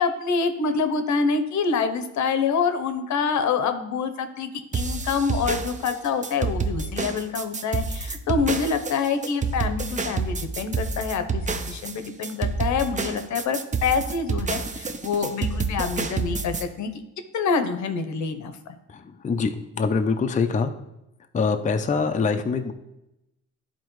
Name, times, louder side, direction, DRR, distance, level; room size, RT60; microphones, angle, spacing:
voice 1, 0.0-16.9 17.3-18.7, left 5 dB, 70° left, 8 dB, 0.9 m, -26 dB
sound 1, 4.7-16.6, right 4 dB, 25° right, 0.6 m, -28 dB
voice 2, 18.9-20.7 21.3-22.7, left 5 dB, 25° left, 6 dB, 0.5 m, -24 dB
11.5 x 4.1 x 3.1 m, 0.90 s
cardioid pair, 90°, 30 cm